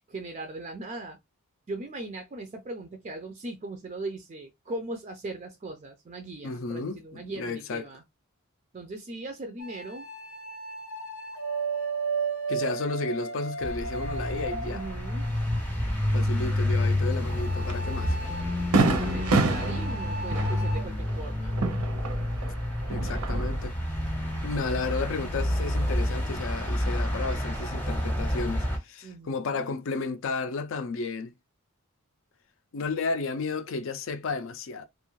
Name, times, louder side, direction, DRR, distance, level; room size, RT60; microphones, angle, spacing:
voice 1, 0.1-1.2 1.7-8.0 8.7-10.1 14.7-15.3 18.7-21.6 29.0-29.7, right 2 dB, 30° right, 0.3 m, -39 dB
voice 2, 6.4-7.8 12.5-14.8 16.1-18.2 22.9-23.7 24.4-31.3 32.7-34.9, left 4 dB, 60° left, 0.4 m, -33 dB
sound 1, 9.6-15.4 17.3-20.8, right 4 dB, 85° left, 0.8 m, -35 dB
sound 2, 13.6-28.8, left 1 dB, 10° left, 0.7 m, -29 dB
Fireworks, 17.7-17.8 18.2-18.3 18.7-22.5 22.8-23.7, right 3 dB, 85° right, 0.6 m, -27 dB
2.5 x 2.3 x 3.0 m
head